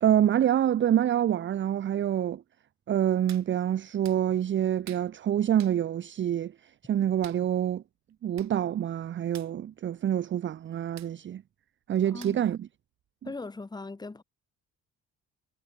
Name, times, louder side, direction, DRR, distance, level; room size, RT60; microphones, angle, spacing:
voice 1, 0.0-2.4 2.9-6.5 6.9-7.8 8.2-11.4 11.9-12.6, right 10 dB, 40° right, 0.6 m, -26 dB
Hands, 3.3-3.5 4.0-4.2 4.8-5.1 5.6-5.8 7.2-7.4 8.1-8.2 8.4-8.5 8.8-9.0 9.3-9.5 11.0-11.1 12.2-12.5 13.0-13.1, right 13 dB, 65° right, 1.4 m, -48 dB
voice 2, 12.0-12.5 13.2-14.2, left 3 dB, 15° left, 1.1 m, -39 dB
cardioid pair, 115°, 30 cm